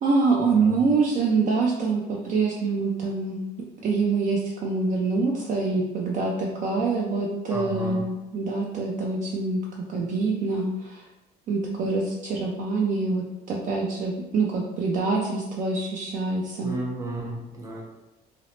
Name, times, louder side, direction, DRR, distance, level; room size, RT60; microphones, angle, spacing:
voice 1, 0.0-3.4 3.8-9.6 9.9-11.0 11.5-16.7, right 4 dB, 50° right, -2 dB, 0.4 m, -25 dB
voice 2, 7.5-8.0 16.6-17.8, right 2 dB, 20° right, -3 dB, 0.7 m, -33 dB
2.8 x 2.0 x 2.9 m, 0.99 s
cardioid pair, 110°, 17 cm